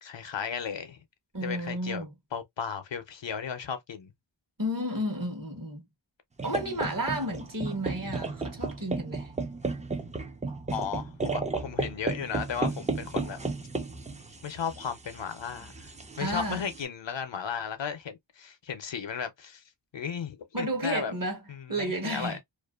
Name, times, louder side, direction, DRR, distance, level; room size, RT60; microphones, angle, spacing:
voice 1, 0.0-1.0 1.4-2.0 2.3-4.1 8.0-8.1 10.7-13.4 14.4-15.9 16.2-19.6 19.9-21.1 21.5-22.4, left 7 dB, 70° left, 0.6 m, -35 dB
voice 2, 1.3-2.1 4.6-5.8 6.4-9.3 16.2-16.6 20.5-21.4 21.7-22.4, equal, 45° right, 1.1 m, -32 dB
sound 1, 6.4-16.8, right 3 dB, 15° right, 0.4 m, -34 dB
2.5 x 2.1 x 2.3 m
wide cardioid pair, 50°, 46 cm